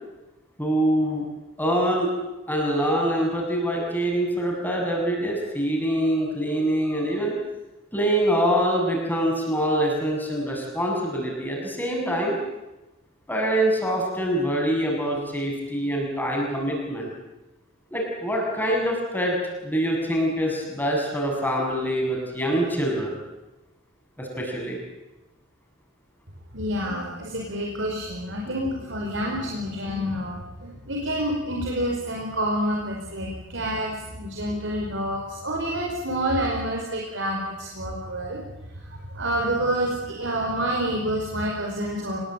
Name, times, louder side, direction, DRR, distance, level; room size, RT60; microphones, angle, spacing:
voice 1, 0.6-1.2 1.6-2.1 2.5-7.3 7.9-12.3 13.3-17.1 17.9-19.4 19.6-23.2 24.2-24.8, right 1 dB, 10° left, -1 dB, 7.3 m, -24 dB
voice 2, 26.5-38.4 39.1-42.2, equal, 75° right, -1 dB, 4.7 m, -28 dB
25.5 x 21.0 x 9.0 m, 1.0 s
head